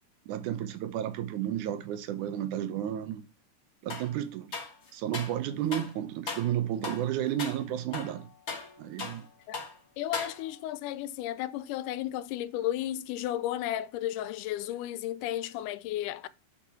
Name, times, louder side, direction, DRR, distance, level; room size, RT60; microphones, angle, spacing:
voice 1, 0.3-3.2 3.8-4.5 4.9-8.3 8.8-9.3, right 11 dB, 80° right, 2.2 m, -32 dB
sound 1, 3.9-4.1 4.5-5.4 5.7-5.9 6.3-6.5 6.8-7.1 7.4-7.6 7.9-9.3 9.5-9.8 10.1-10.7, left 4 dB, 40° left, 0.9 m, -38 dB
voice 2, 10.0-16.3, left 12 dB, 90° left, 2.1 m, -33 dB
6.1 x 6.0 x 5.7 m
omnidirectional pair, 3.6 m